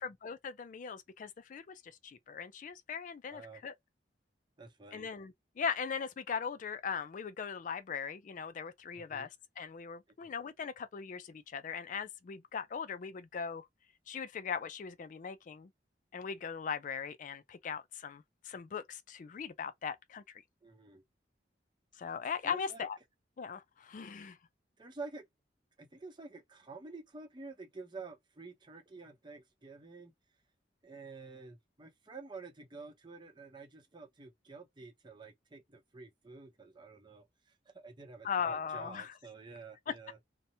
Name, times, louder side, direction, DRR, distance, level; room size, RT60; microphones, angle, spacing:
voice 1, 0.0-3.7 4.9-9.3 9.6-13.7 14.1-15.7 16.1-20.2 22.0-23.0 23.4-24.4 38.2-39.1 39.9-40.0, left 6 dB, 45° left, 0.3 m, -39 dB
voice 2, 3.3-3.6 4.6-5.1 8.9-9.3 10.2-10.3 20.6-21.0 22.4-22.9 24.8-25.3 25.8-30.1 30.8-40.2, right 3 dB, 25° right, 0.7 m, -49 dB
2.8 x 2.1 x 2.7 m
head